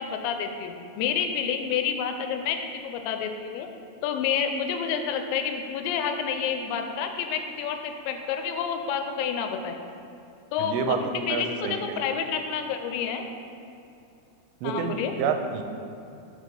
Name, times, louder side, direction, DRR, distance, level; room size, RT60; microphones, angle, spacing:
voice 1, 0.0-3.7 4.0-9.8 10.5-11.0 11.3-13.3 14.6-15.1, left 7 dB, 85° left, 6 dB, 2.7 m, -29 dB
voice 2, 10.6-12.0 14.6-15.6, right 5 dB, 80° right, 5 dB, 2.5 m, -29 dB
6.4 x 4.8 x 5.2 m, 2.7 s
omnidirectional pair, 5.2 m